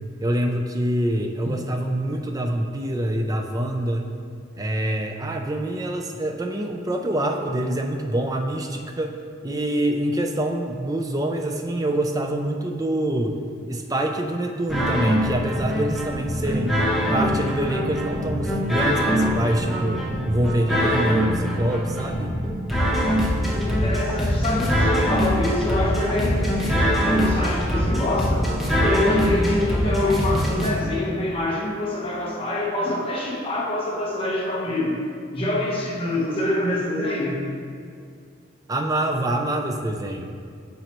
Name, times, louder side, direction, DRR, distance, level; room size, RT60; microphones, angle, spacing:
voice 1, 0.2-4.1 4.5-9.1 9.4-13.4 13.7-16.8 17.1-22.3 38.7-40.3, right 1 dB, 20° right, 4 dB, 0.4 m, -25 dB
sound 1, 14.7-30.7, equal, ahead, 0.8 m, -23 dB
voice 2, 23.4-28.5 28.7-35.0 35.3-37.4, left 2 dB, 25° left, -4 dB, 1.1 m, -25 dB
9.1 x 5.5 x 3.0 m, 2.2 s
head